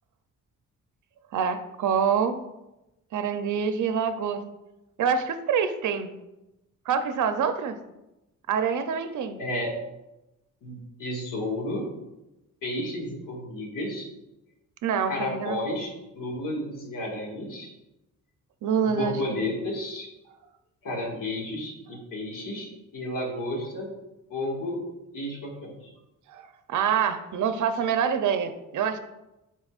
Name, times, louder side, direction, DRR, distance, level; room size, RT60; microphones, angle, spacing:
voice 1, 1.3-2.4 3.1-4.4 5.0-6.1 6.9-7.8 8.5-9.4 14.8-15.6 18.6-19.5 26.3-26.4 26.7-29.0, right 7 dB, 65° right, 9 dB, 0.6 m, -26 dB
voice 2, 9.4-9.7 10.6-11.8 12.6-14.1 15.1-17.7 18.8-20.1 20.8-22.7 22.9-23.9 24.3-24.8 25.1-25.9, left 1 dB, 85° left, -2 dB, 1.9 m, -32 dB
10.5 x 4.2 x 2.4 m, 0.96 s
cardioid pair, 115°, 32 cm